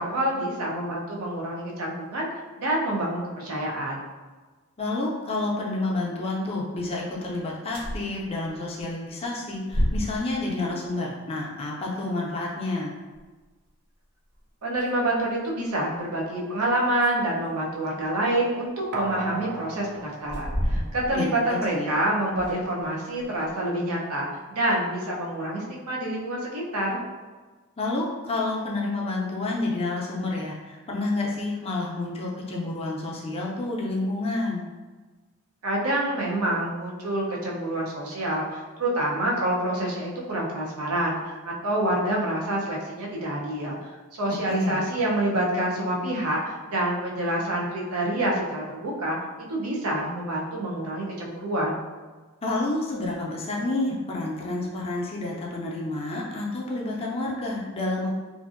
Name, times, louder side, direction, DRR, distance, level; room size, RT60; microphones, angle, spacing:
voice 1, 0.0-4.0 14.6-27.0 35.6-43.8 44.2-49.2 49.5-51.8, right 1 dB, 90° right, -3 dB, 0.6 m, -27 dB
voice 2, 4.8-12.9 21.1-22.0 27.8-34.7 44.5-44.8 52.4-58.1, left 2 dB, 25° left, -3 dB, 0.4 m, -29 dB
sound 1, 7.7-8.1 8.5-8.6 9.7-10.4 13.1-13.2 14.3-14.4 14.7-14.9 15.5-15.6 16.7-18.1 19.1-19.2 20.1-21.3 21.6-21.7 22.3-22.8 23.2-23.6, equal, 70° right, 1.5 m, -30 dB
sound 2, 18.9-21.5 21.8-21.9, right 2 dB, 50° right, 0.3 m, -35 dB
2.6 x 2.4 x 2.5 m, 1.3 s
head